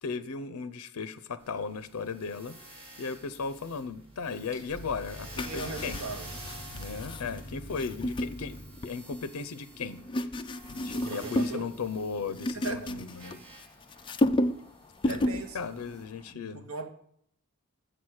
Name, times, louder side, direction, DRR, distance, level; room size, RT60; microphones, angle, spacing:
voice 1, 0.0-6.0 6.7-10.0 10.7-13.4 15.0-16.6, left 5 dB, 85° left, 0.5 m, -36 dB
sound 1, 1.4-16.0, right 1 dB, 25° right, 2.5 m, -50 dB
sound 2, 2.6-3.5 3.8-8.7, equal, 50° right, 2.1 m, -45 dB
sound 3, 5.3-9.2 9.8-11.6 11.9-13.7 13.9-14.7 15.0-15.5 15.8-16.0, left 1 dB, 20° left, 0.4 m, -32 dB
voice 2, 5.4-6.3 10.9-11.7 12.5-13.2 15.1-15.7 16.1-16.9, right 3 dB, 70° right, 1.0 m, -39 dB
7.8 x 6.0 x 6.4 m
head